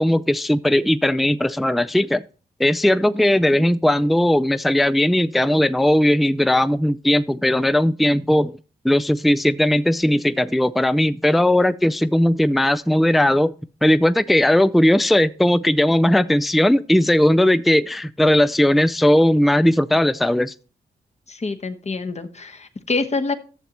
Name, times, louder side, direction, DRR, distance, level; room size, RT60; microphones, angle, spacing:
voice 1, 0.0-2.2 2.6-8.6 8.8-13.5 13.8-20.5, left 1 dB, ahead, 0.4 m, -18 dB
voice 2, 21.3-23.3, left 3 dB, 35° left, 1.1 m, -26 dB
11.5 x 7.0 x 2.9 m
supercardioid pair, 40°, 19 cm